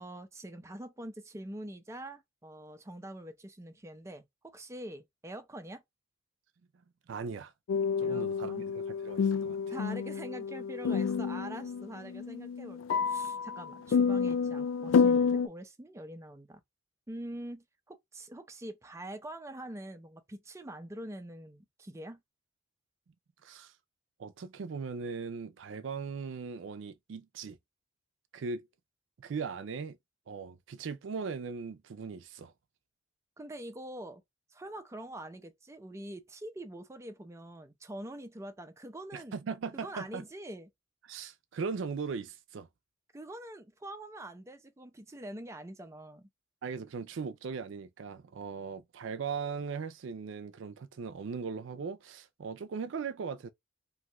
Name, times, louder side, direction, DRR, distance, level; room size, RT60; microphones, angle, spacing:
voice 1, 0.0-5.8 8.0-8.7 9.7-16.6 17.1-22.2 33.4-34.2 34.5-39.3 39.7-40.7 43.1-46.3, right 1 dB, 15° right, 0.5 m, -44 dB
voice 2, 7.1-7.5 8.0-9.6 23.4-23.7 24.2-27.6 28.3-28.7 29.2-30.0 30.3-32.5 39.1-40.2 41.1-42.7 46.6-53.5, right 5 dB, 75° right, 0.4 m, -39 dB
sound 1, 7.7-15.5, left 6 dB, 80° left, 0.3 m, -29 dB
2.6 x 2.4 x 3.0 m
head